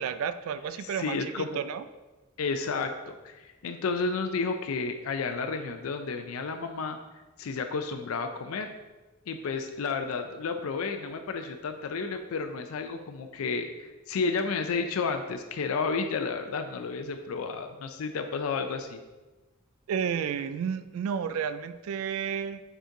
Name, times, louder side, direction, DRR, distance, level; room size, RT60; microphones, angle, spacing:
voice 1, 0.0-1.9 19.9-22.6, right 7 dB, 85° right, 15 dB, 0.3 m, -31 dB
voice 2, 1.0-1.6 2.4-7.0 7.4-8.7 9.3-19.0, left 4 dB, 85° left, 6 dB, 0.4 m, -31 dB
5.1 x 4.9 x 3.8 m, 1.2 s
head